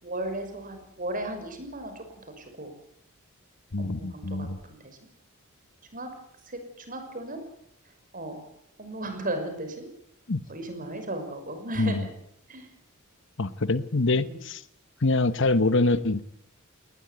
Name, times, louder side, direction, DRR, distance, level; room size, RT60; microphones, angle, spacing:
voice 1, 0.0-2.0 2.4-2.7 3.8-5.0 5.9-6.1 6.4-7.4 8.1-8.4 8.8-9.9 10.5-12.1 12.5-12.7 14.1-14.4, right 1 dB, 40° right, 7 dB, 6.0 m, -35 dB
voice 2, 3.7-4.6 10.3-10.4 11.8-12.0 13.4-14.6 15.0-16.2, left 2 dB, 60° left, 14 dB, 1.1 m, -25 dB
20.0 x 19.5 x 9.5 m, 0.76 s
head